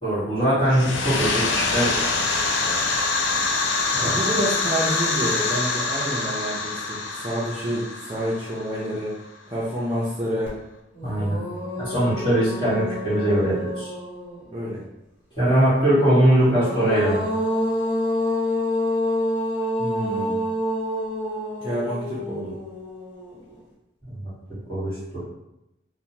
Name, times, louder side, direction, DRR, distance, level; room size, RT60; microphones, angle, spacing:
voice 1, 0.0-1.9 3.9-4.1 11.0-11.4 11.8-13.9 15.3-17.3 24.1-24.2 24.5-25.2, right 1 dB, 25° left, -11 dB, 1.3 m, -21 dB
sound 1, 0.7-9.2, left 3 dB, 90° left, 0.4 m, -25 dB
voice 2, 4.0-9.2 9.5-10.6 14.5-14.8 19.8-20.4 21.6-22.6, equal, 25° right, -7 dB, 0.4 m, -28 dB
sound 2, 10.5-10.6 10.9-14.6 16.3-23.5, left 1 dB, 60° left, 1.0 m, -28 dB
2.7 x 2.1 x 2.7 m, 0.88 s
head